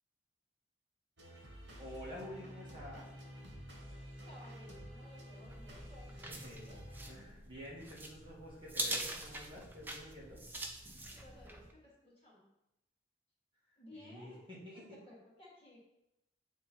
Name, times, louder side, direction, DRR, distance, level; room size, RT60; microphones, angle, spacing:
sound 1, 1.2-7.1, equal, 80° right, 1.4 m, -50 dB
voice 1, 1.8-3.1 6.3-6.8 7.1-10.4 13.9-15.0, equal, 25° right, -6 dB, 1.8 m, -49 dB
voice 2, 4.3-6.8 11.1-12.5 13.8-14.5 14.7-15.8, left 1 dB, 30° left, -6 dB, 1.9 m, -57 dB
sound 2, 5.5-11.7, right 1 dB, 10° right, 0.5 m, -44 dB
7.8 x 3.5 x 4.5 m, 0.88 s
head